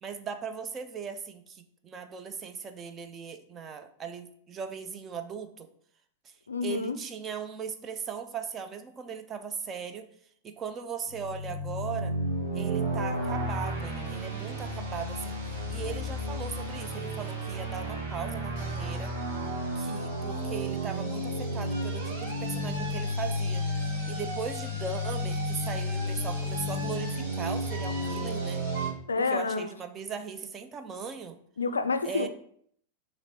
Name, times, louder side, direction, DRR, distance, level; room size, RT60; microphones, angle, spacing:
voice 1, 0.0-5.7 6.2-6.3 6.6-10.1 10.4-12.1 12.5-15.4 15.7-19.1 19.7-23.6 24.1-28.6 29.3-31.4 32.0-32.3, right 6 dB, 25° right, 0.5 m, -38 dB
voice 2, 6.5-7.0 29.1-29.7 31.6-32.3, left 4 dB, 75° left, 0.3 m, -28 dB
sound 1, 11.1-28.9, equal, 45° right, 1.5 m, -32 dB
5.8 x 3.1 x 2.9 m
figure-of-eight pair, 90°, 0 cm